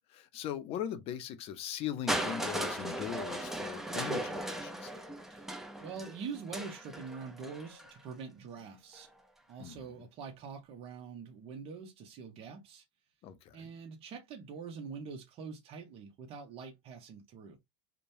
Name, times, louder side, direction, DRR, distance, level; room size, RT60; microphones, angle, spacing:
voice 1, 0.1-5.0 9.6-10.1 13.2-13.7, left 9 dB, 45° left, 0.6 m, -40 dB
Crushing, 2.1-8.0 8.9-9.0, right 1 dB, 5° right, 0.5 m, -37 dB
voice 2, 5.8-9.1 9.5-12.8 13.5-17.6, right 5 dB, 45° right, 0.8 m, -44 dB
3.0 x 2.1 x 2.6 m
supercardioid pair, 115°, 13 cm